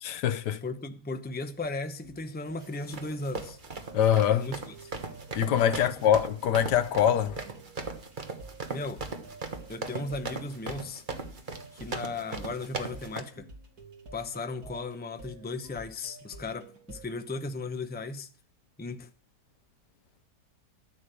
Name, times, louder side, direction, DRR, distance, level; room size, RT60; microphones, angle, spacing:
voice 1, 0.0-0.6 3.9-4.5 5.3-7.4, left 9 dB, 90° left, 1.5 m, -24 dB
voice 2, 0.6-3.6 4.3-4.9 5.6-6.0 8.7-9.1 9.7-11.0 11.8-13.5 14.1-18.3 18.8-19.1, left 3 dB, 10° left, 0.6 m, -36 dB
sound 1, 1.3-17.1, right 2 dB, 65° right, 2.6 m, -50 dB
sound 2, 2.6-13.2, right 4 dB, 30° right, 1.4 m, -38 dB
13.5 x 9.5 x 6.8 m
omnidirectional pair, 1.7 m